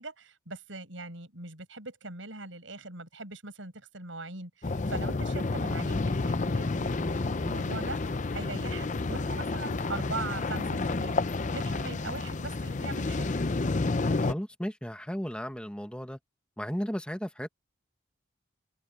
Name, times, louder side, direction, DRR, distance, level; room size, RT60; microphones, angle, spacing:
voice 1, 0.0-8.0 8.3-13.3, right 3 dB, 75° right, 7.3 m, -41 dB
sound 1, 4.6-14.3, left 3 dB, 40° left, 0.6 m, -30 dB
voice 2, 14.2-16.2 16.6-17.5, equal, 5° left, 1.7 m, -35 dB
head